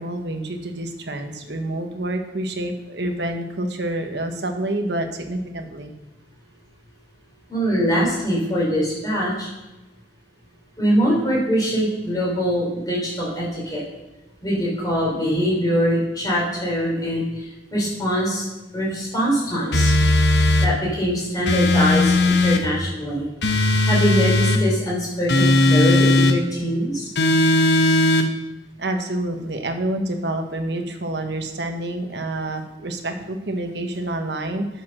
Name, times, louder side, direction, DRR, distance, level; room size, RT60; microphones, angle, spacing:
voice 1, 0.0-5.9 28.8-34.7, right 1 dB, 70° right, 5 dB, 1.2 m, -28 dB
voice 2, 7.5-9.5 10.8-13.8 14.4-17.4 17.7-18.4 18.7-19.9 20.6-23.3 23.9-27.1, equal, 20° left, -5 dB, 4.0 m, -23 dB
sound 1, 19.7-20.7 21.5-22.6 23.4-24.6 25.3-26.4 27.2-28.3, left 2 dB, 75° left, 0.9 m, -17 dB
8.8 x 6.9 x 6.2 m, 1.0 s
head